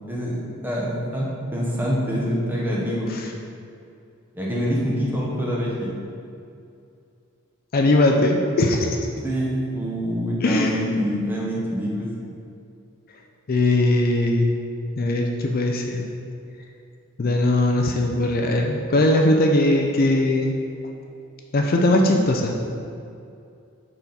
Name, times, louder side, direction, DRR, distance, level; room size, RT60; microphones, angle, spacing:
voice 1, 0.1-3.1 4.3-5.9 9.2-12.1, equal, 10° right, -5 dB, 0.9 m, -25 dB
voice 2, 7.7-9.0 10.4-10.8 13.5-14.5 15.0-16.1 17.2-20.6 21.5-22.5, left 1 dB, 45° left, 1 dB, 0.4 m, -20 dB
5.6 x 4.2 x 4.0 m, 2.5 s
head